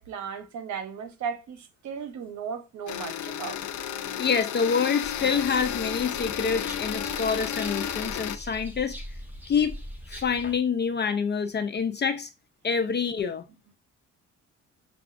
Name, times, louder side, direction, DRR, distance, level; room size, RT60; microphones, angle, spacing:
voice 1, 0.0-3.6, right 6 dB, 70° right, 0.9 m, -36 dB
sound 1, 2.9-8.4, left 10 dB, 75° left, 0.6 m, -32 dB
voice 2, 4.2-8.9 9.5-9.7 10.1-12.3 12.6-13.4, left 6 dB, 35° left, 0.4 m, -26 dB
sound 2, 5.0-10.6, equal, 5° right, 1.1 m, -42 dB
6.8 x 2.4 x 2.5 m
cardioid pair, 90°, 30 cm